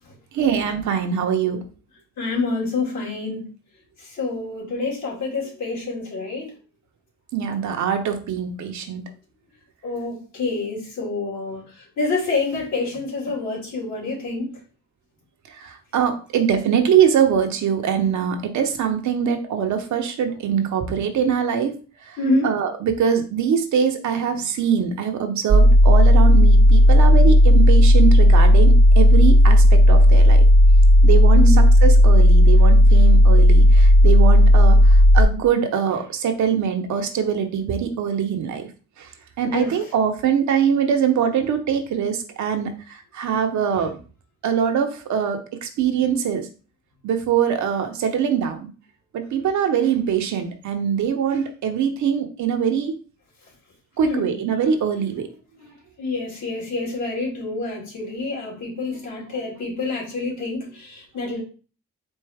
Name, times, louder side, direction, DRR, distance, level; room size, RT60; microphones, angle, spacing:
voice 1, 0.3-1.6 7.3-9.1 15.6-21.7 22.1-22.2 22.4-30.5 31.0-38.6 39.4-42.7 43.1-44.0 44.4-46.5 47.0-48.7 49.1-53.0 54.0-55.3, right 7 dB, 70° right, 0.9 m, -23 dB
voice 2, 2.2-3.5 4.0-6.5 9.8-14.6 20.3-20.4 22.2-22.5 31.3-31.6 39.4-39.7 54.0-54.3 55.6-55.7 56.0-61.4, left 3 dB, 65° left, 2.3 m, -27 dB
sound 1, 25.5-35.2, equal, 25° right, 0.3 m, -12 dB
4.4 x 2.7 x 3.5 m
cardioid pair, 90°, 30 cm